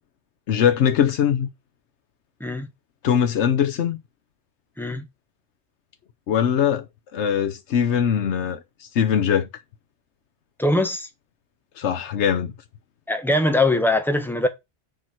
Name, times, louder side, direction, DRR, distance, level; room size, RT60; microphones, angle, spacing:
voice 1, 0.5-1.5 3.0-4.0 6.3-6.8 7.1-9.5 11.8-12.5, left 8 dB, 90° left, 1.1 m, -21 dB
voice 2, 10.6-11.1 13.1-14.5, left 2 dB, ahead, 1.3 m, -21 dB
7.1 x 4.5 x 5.8 m
omnidirectional pair, 1.1 m